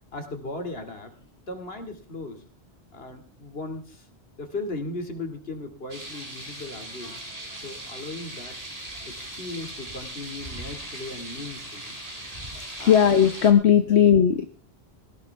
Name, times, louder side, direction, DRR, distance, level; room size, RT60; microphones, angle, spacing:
voice 1, 0.1-2.4 2.9-4.1 4.4-7.2 7.6-8.6 9.1-11.9 12.8-13.1 13.9-14.0, left 2 dB, 65° left, 6 dB, 2.7 m, -37 dB
sound 1, 5.9-13.5, right 1 dB, 35° right, 3.7 m, -39 dB
voice 2, 12.5-14.5, left 8 dB, 85° left, 8 dB, 1.3 m, -18 dB
18.5 x 16.5 x 3.5 m, 0.36 s
omnidirectional pair, 1.1 m